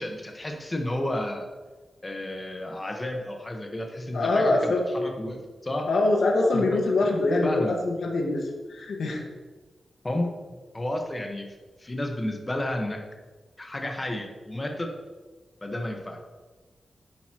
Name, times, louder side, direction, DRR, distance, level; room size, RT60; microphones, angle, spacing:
voice 1, 0.0-1.5 2.0-5.8 6.5-6.6 7.0-7.1 7.4-7.7 10.0-10.3 10.7-11.5 11.8-13.0 13.6-14.9 15.6-16.2, left 1 dB, 20° left, 2 dB, 1.3 m, -31 dB
voice 2, 4.1-4.8 5.8-9.2, left 2 dB, 75° left, 0 dB, 1.6 m, -24 dB
11.0 x 8.2 x 3.0 m, 1.3 s
wide cardioid pair, 140°, 0 cm